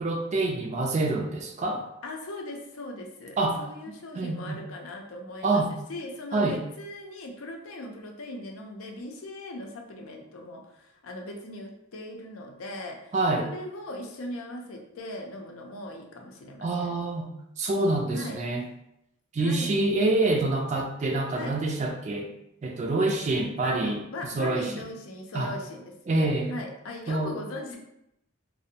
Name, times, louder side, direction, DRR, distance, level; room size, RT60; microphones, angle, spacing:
voice 1, 0.0-1.8 3.4-3.6 4.1-4.6 5.4-5.7 6.3-6.6 13.1-13.5 16.6-17.3 17.6-18.6 19.3-22.3 22.6-24.0 24.4-24.7 25.3-25.5 26.1-26.6 27.1-27.3, right 2 dB, 35° right, 2 dB, 0.3 m, -26 dB
voice 2, 2.0-13.1 13.4-16.9 18.1-18.4 19.4-19.7 21.3-21.6 23.6-27.8, left 1 dB, 80° left, 2 dB, 0.5 m, -39 dB
2.5 x 2.0 x 2.7 m, 0.83 s
head